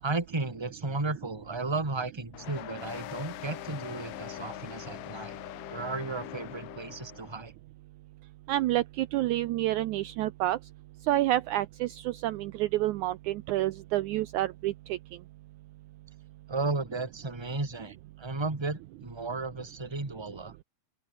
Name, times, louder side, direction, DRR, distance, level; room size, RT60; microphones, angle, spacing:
voice 1, 0.0-5.3 5.7-7.5 16.5-20.6, right 3 dB, 10° right, 2.1 m, -34 dB
sound 1, 2.3-7.4, left 15 dB, 75° left, 2.5 m, -42 dB
voice 2, 8.5-10.6 11.1-15.0, right 15 dB, 80° right, 1.8 m, -28 dB
open air
omnidirectional pair, 4.0 m